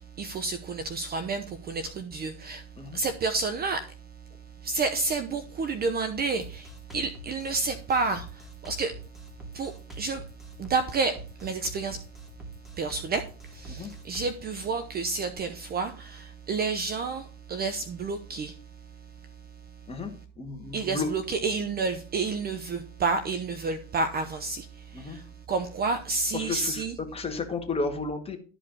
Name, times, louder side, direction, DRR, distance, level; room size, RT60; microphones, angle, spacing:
voice 1, 0.0-2.6 2.9-3.9 4.6-9.0 9.5-10.2 10.6-12.0 12.8-13.2 13.5-18.6 20.7-26.9, right 4 dB, 25° right, 0.9 m, -30 dB
Drum kit, 6.4-14.4, equal, ahead, 2.6 m, -45 dB
voice 2, 19.9-21.1 24.9-25.2 26.3-28.4, left 4 dB, 15° left, 2.0 m, -33 dB
12.5 x 5.0 x 6.2 m
supercardioid pair, 120°, 39 cm